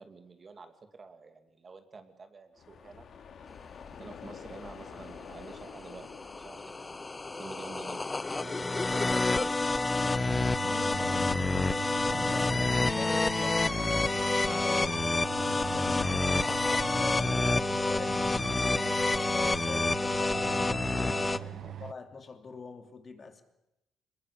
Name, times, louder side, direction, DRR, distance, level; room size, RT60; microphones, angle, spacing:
voice 1, 0.0-3.1 3.8-10.4 11.1-11.5 21.6-21.7, right 4 dB, 35° right, 7 dB, 2.6 m, -49 dB
sound 1, 2.5-8.3, left 6 dB, 60° left, 2.5 m, -49 dB
sound 2, 5.3-21.4, left 3 dB, 20° left, 0.9 m, -28 dB
sound 3, 9.4-9.5 9.8-21.9, right 10 dB, 65° right, 1.0 m, -42 dB
voice 2, 10.6-11.7 12.1-16.4 16.9-23.4, left 4 dB, 40° left, 6 dB, 2.8 m, -45 dB
22.0 x 20.5 x 8.7 m, 0.87 s
cardioid pair, 90°, 0 cm